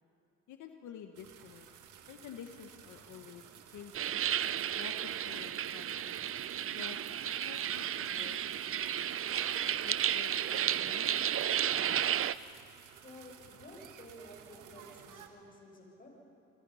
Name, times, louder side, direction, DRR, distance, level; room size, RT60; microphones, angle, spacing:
voice 1, 0.5-1.7 2.1-4.1 4.7-6.2 6.7-7.0 7.2-8.4 9.8-11.4, left 8 dB, 80° left, 5 dB, 1.4 m, -50 dB
sound 1, 1.1-15.3, right 8 dB, 80° right, 1.8 m, -54 dB
sound 2, 3.9-12.4, right 10 dB, 45° right, 0.6 m, -33 dB
voice 2, 13.0-16.1, left 1 dB, 30° left, 0 dB, 7.1 m, -52 dB
29.0 x 23.5 x 5.7 m, 3.0 s
cardioid pair, 90°, 30 cm